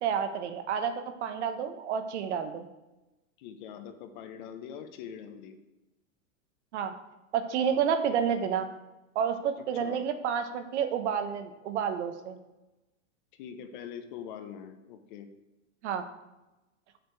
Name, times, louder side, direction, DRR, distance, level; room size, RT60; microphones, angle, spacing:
voice 1, 0.0-2.7 6.7-6.9 7.3-8.7 9.1-12.4 15.8-16.0, right 7 dB, 60° right, 8 dB, 0.9 m, -30 dB
voice 2, 3.4-5.6 9.7-10.0 13.3-15.3, left 8 dB, 40° left, 7 dB, 0.7 m, -43 dB
6.6 x 6.4 x 4.5 m, 1.0 s
supercardioid pair, 160°, 40 cm